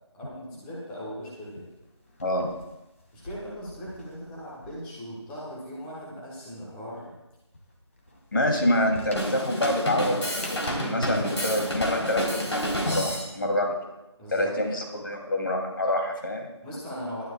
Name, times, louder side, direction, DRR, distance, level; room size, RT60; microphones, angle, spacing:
voice 1, 0.1-1.7 3.1-7.1 14.2-14.5 16.6-17.3, equal, 5° left, -6 dB, 1.3 m, -39 dB
sound 1, 1.4-5.1 5.4-11.2, left 1 dB, 30° left, 2.2 m, -46 dB
voice 2, 8.3-13.8 14.3-16.5, left 1 dB, 45° left, 1 dB, 2.9 m, -27 dB
Drum kit, 9.1-13.3, equal, 70° left, 3.6 m, -29 dB
19.5 x 12.0 x 2.4 m, 0.98 s
figure-of-eight pair, 165°, 15 cm